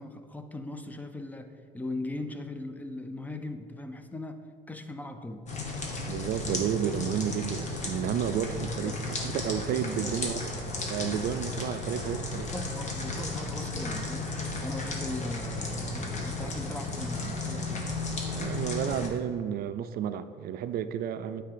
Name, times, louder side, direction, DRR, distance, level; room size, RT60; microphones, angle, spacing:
voice 1, 0.0-5.5 8.5-9.0 9.9-10.2 12.4-14.3 14.6-17.9, left 2 dB, 10° left, 8 dB, 0.6 m, -39 dB
sound 1, 5.5-19.1, left 2 dB, 45° left, 1.4 m, -34 dB
voice 2, 6.1-8.9 9.2-10.5 10.9-12.5 18.3-21.4, right 9 dB, 65° right, 11 dB, 0.4 m, -31 dB
9.4 x 3.4 x 6.7 m, 2.2 s
cardioid pair, 110°, 17 cm